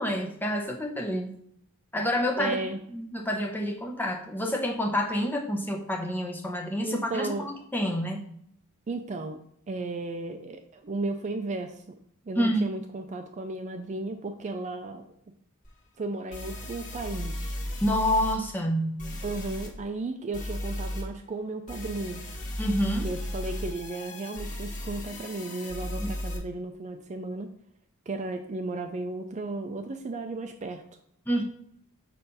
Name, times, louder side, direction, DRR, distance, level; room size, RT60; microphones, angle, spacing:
voice 1, 0.0-1.4 1.9-2.6 2.9-8.2 12.4-12.7 17.8-19.1 22.6-23.1 26.0-26.1 31.3-31.4, equal, 10° left, 1 dB, 0.8 m, -28 dB
voice 2, 2.4-2.8 6.8-7.5 8.9-9.4 9.7-11.8 12.3-15.1 16.0-17.6 19.2-22.3 23.0-27.5 28.1-30.8, right 2 dB, 35° right, 6 dB, 0.4 m, -34 dB
sound 1, 15.6-15.7 16.3-18.4 19.0-19.7 20.3-21.0 21.7-26.4, left 1 dB, 35° left, 1.2 m, -35 dB
6.7 x 2.6 x 5.4 m, 0.68 s
head